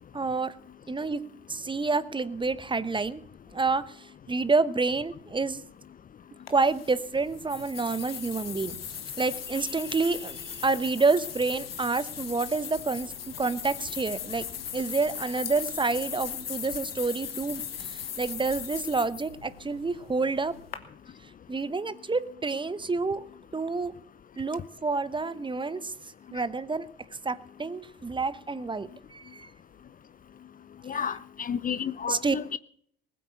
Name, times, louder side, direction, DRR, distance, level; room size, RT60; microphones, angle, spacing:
voice 1, 0.1-0.6 0.9-3.2 3.5-5.6 6.5-14.4 14.7-20.5 21.5-23.3 23.5-23.9 24.4-25.9 26.3-26.9 27.2-29.5 32.1-32.4, right 4 dB, 15° right, 0.9 m, -28 dB
sound 1, 6.5-20.8, left 8 dB, 85° left, 1.3 m, -39 dB
voice 2, 30.9-32.6, left 7 dB, 30° left, 0.6 m, -32 dB
20.0 x 8.6 x 6.9 m
figure-of-eight pair, 55°, 29 cm